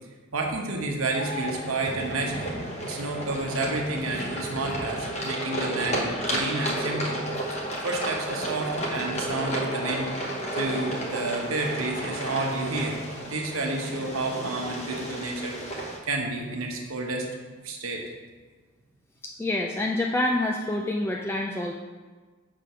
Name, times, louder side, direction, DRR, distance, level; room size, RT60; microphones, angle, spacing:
voice 1, 0.3-7.6 7.8-10.1 10.5-15.6 16.1-17.3 17.6-18.0, right 2 dB, 85° right, 1 dB, 0.9 m, -30 dB
sound 1, 1.0-16.0, right 1 dB, 30° left, 1.0 m, -32 dB
voice 2, 19.2-21.7, left 1 dB, 10° left, 0 dB, 0.3 m, -27 dB
6.5 x 3.6 x 5.6 m, 1.4 s
head